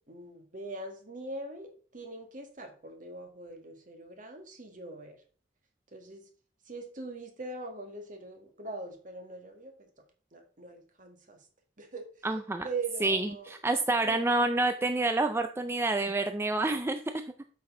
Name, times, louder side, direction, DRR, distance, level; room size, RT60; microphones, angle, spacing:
voice 1, 0.1-5.2 5.9-6.3 6.6-9.9 10.3-11.5 11.8-12.3 12.6-13.5 14.0-14.2, right 3 dB, 45° right, 4 dB, 1.8 m, -42 dB
voice 2, 12.2-12.7 13.0-17.0, right 2 dB, 15° right, 7 dB, 0.4 m, -28 dB
8.3 x 6.0 x 3.7 m, 0.43 s
head